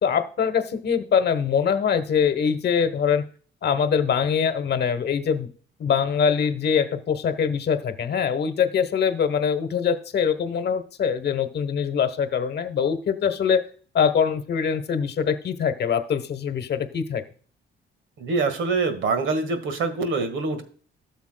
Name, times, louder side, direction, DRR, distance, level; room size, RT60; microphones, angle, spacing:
voice 1, 0.0-3.2 3.6-5.5 5.8-13.6 13.9-17.2, left 7 dB, 55° left, 10 dB, 1.0 m, -23 dB
voice 2, 18.2-20.6, right 4 dB, 75° right, 9 dB, 1.7 m, -25 dB
13.0 x 7.1 x 2.2 m, 0.42 s
cardioid pair, 90°, 20 cm